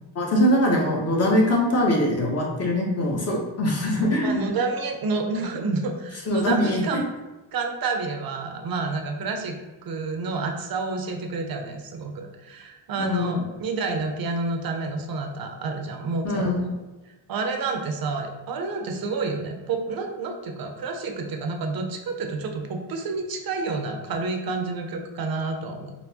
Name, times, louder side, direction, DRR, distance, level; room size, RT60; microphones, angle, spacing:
voice 1, 0.2-4.4 6.3-7.0 13.0-13.3 16.2-16.8, left 1 dB, 35° left, -2 dB, 0.8 m, -22 dB
voice 2, 4.2-7.1 7.5-9.5 9.8-16.5 17.3-25.9, right 3 dB, 50° right, 4 dB, 0.5 m, -29 dB
4.3 x 2.0 x 2.7 m, 1.1 s
cardioid pair, 135°, 45 cm